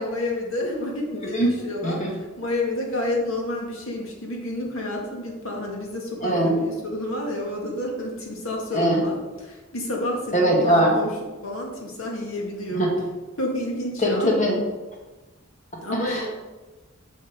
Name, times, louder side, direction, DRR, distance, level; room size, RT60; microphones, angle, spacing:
voice 1, 0.0-9.2 9.4-12.9 13.4-14.3 15.8-16.3, left 1 dB, 75° left, 0 dB, 2.0 m, -30 dB
voice 2, 1.1-1.5 1.8-2.1 6.2-6.6 8.7-9.0 10.3-11.0 12.8-13.0 14.0-14.6 16.0-16.3, right 1 dB, 35° left, -1 dB, 1.8 m, -21 dB
7.5 x 5.6 x 5.2 m, 1.2 s
head